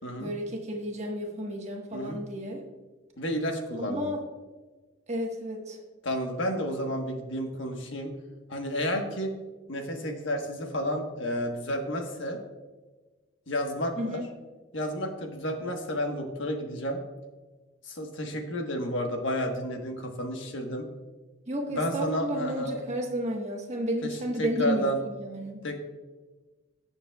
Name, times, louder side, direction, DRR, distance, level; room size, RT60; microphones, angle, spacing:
voice 1, 0.2-2.6 3.7-4.2 5.1-5.8 14.0-14.2 21.5-25.6, equal, 35° right, 1 dB, 1.4 m, -32 dB
voice 2, 3.2-4.1 6.0-8.1 8.5-9.3 9.7-12.4 13.5-14.2 14.7-17.0 17.8-20.9 21.7-22.8 24.0-25.0 25.6-25.8, equal, 65° left, 3 dB, 1.3 m, -31 dB
17.5 x 7.1 x 2.4 m, 1.3 s
head